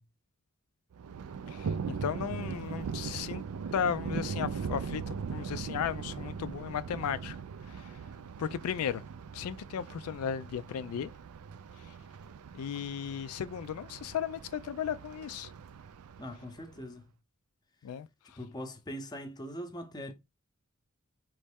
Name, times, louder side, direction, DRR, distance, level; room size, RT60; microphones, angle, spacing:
Thunder, 0.9-16.9, right 6 dB, 80° right, 0.4 m, -40 dB
voice 1, 1.5-3.4 3.7-7.4 7.7-8.0 8.4-9.0 9.3-11.1 12.5-15.5 17.8-18.4, left 8 dB, 75° left, 0.3 m, -35 dB
voice 2, 16.2-17.1 18.4-20.1, equal, 20° left, 0.7 m, -41 dB
4.1 x 3.2 x 3.4 m
head